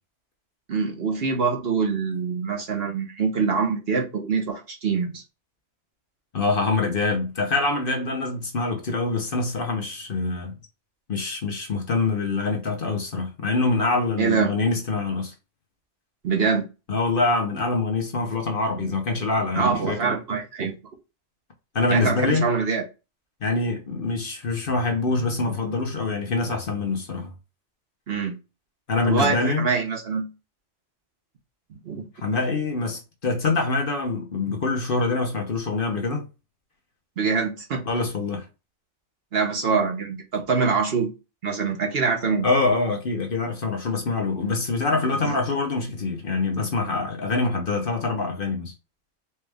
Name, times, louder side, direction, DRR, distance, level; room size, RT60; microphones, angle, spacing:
voice 1, 0.7-5.2 14.2-14.5 16.2-16.7 19.6-20.8 21.9-22.8 28.1-28.4 29.1-30.3 31.8-32.0 37.2-37.8 39.3-41.1 41.4-42.5 45.2-45.3, right 5 dB, 55° right, 1.1 m, -24 dB
voice 2, 6.3-10.6 11.1-15.3 16.9-20.0 21.7-22.5 23.4-27.3 28.9-29.7 32.2-36.3 37.9-38.5 42.4-48.7, left 3 dB, 50° left, 1.0 m, -25 dB
4.4 x 2.5 x 3.3 m
omnidirectional pair, 1.3 m